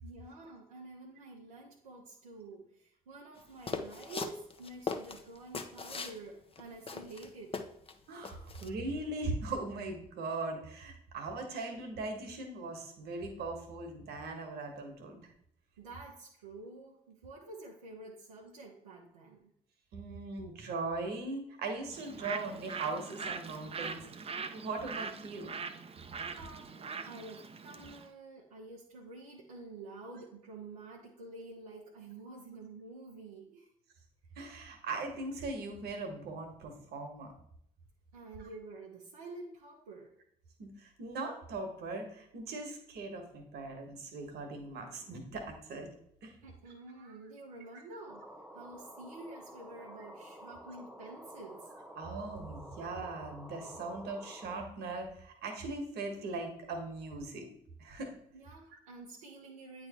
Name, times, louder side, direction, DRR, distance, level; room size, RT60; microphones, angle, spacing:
voice 1, 0.0-7.6 15.8-19.5 26.1-33.7 38.1-40.1 46.4-51.7 58.3-59.9, right 2 dB, 90° right, -3 dB, 0.8 m, -49 dB
sound 1, 3.7-6.2 6.6-6.7 6.9-7.9 8.2-8.7, left 4 dB, 30° left, 0.8 m, -39 dB
voice 2, 8.1-15.2 19.9-25.5 26.3-26.4 34.4-37.3 40.6-45.9 46.2-46.3 47.0-47.2 51.9-57.5 57.8-58.1, right 3 dB, 65° right, 4 dB, 1.4 m, -40 dB
Bird, 21.9-28.1, right 5 dB, 35° right, 0.6 m, -42 dB
sound 2, 48.1-54.6, equal, 5° right, 1.1 m, -50 dB
8.6 x 3.2 x 4.2 m, 0.70 s
hypercardioid pair, 50°, 18 cm